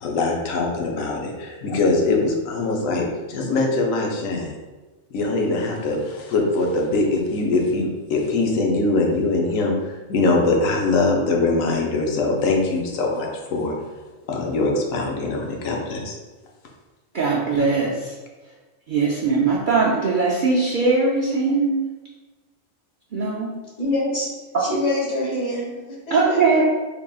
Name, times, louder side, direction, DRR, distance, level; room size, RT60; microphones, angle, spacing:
voice 1, 0.0-4.5 5.1-9.7 10.1-13.7 14.3-16.1, left 3 dB, 85° left, 0 dB, 1.1 m, -22 dB
voice 2, 17.1-18.1 18.9-21.8 23.1-23.5 26.1-26.6, right 4 dB, 60° right, -6 dB, 0.5 m, -20 dB
voice 3, 23.8-24.3 24.6-25.7 26.1-26.6, left 1 dB, 35° left, -5 dB, 1.1 m, -25 dB
3.7 x 3.4 x 2.3 m, 1.2 s
omnidirectional pair, 1.3 m